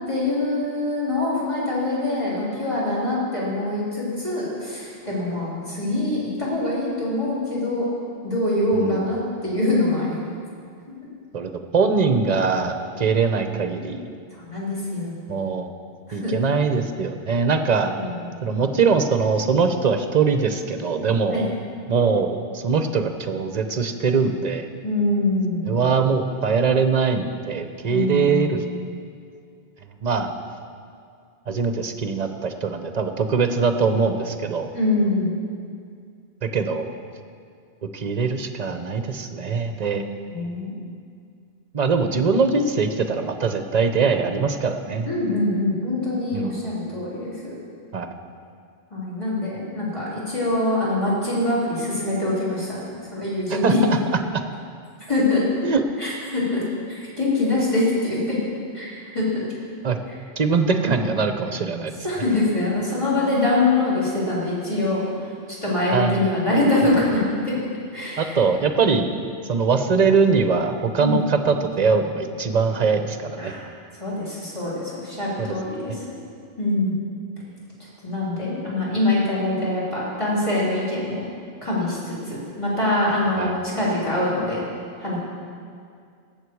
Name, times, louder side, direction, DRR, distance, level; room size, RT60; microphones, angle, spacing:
voice 1, 0.1-7.8 8.2-10.1 14.4-15.2 16.1-16.5 18.0-18.3 21.3-21.5 24.8-25.7 27.9-28.5 34.7-35.3 40.3-40.7 45.0-47.5 48.9-52.8 53.1-53.8 55.1-55.4 56.0-56.6 56.9-58.4 58.7-59.4 62.0-65.0 65.6-67.6 67.9-68.4 71.0-71.2 73.4-73.6 74.0-76.1 76.6-76.9 78.0-81.2 81.6-84.6 85.0-85.2, left 2 dB, 25° left, -8 dB, 3.8 m, -24 dB
voice 2, 8.7-9.0 11.3-14.1 15.3-15.7 16.1-18.0 18.4-21.5 21.9-24.6 25.7-28.6 30.0-30.3 31.5-34.7 36.4-36.9 37.9-40.0 41.7-45.1 46.3-46.5 47.9-48.1 53.5-54.0 55.6-55.8 59.8-60.0 60.4-61.9 65.9-66.3 68.2-69.1 69.5-73.5 75.4-75.5 75.9-76.0 83.4-83.5, right 5 dB, 40° right, 7 dB, 0.8 m, -22 dB
18.0 x 7.5 x 4.7 m, 2.3 s
omnidirectional pair, 1.1 m